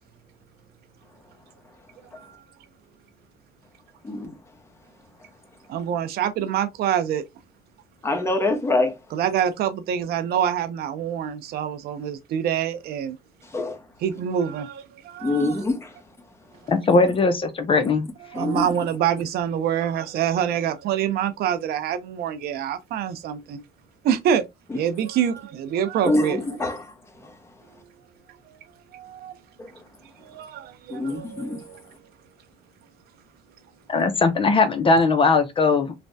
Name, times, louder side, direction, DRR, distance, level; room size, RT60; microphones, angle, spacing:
voice 1, 5.7-7.2 9.1-13.2 14.0-15.6 18.3-23.6 24.0-24.4 24.7-26.4 28.5-28.6 28.9-29.4 30.2-31.8, right 9 dB, 70° right, 0.5 m, -26 dB
voice 2, 8.0-9.0 13.5-13.8 15.2-15.9 18.3-18.7 26.0-26.8 29.6-29.7 30.9-31.6, left 2 dB, 15° left, 0.8 m, -24 dB
voice 3, 16.7-18.1 33.9-35.9, left 3 dB, 30° left, 0.5 m, -19 dB
3.2 x 2.1 x 2.6 m
cardioid pair, 110°, 17 cm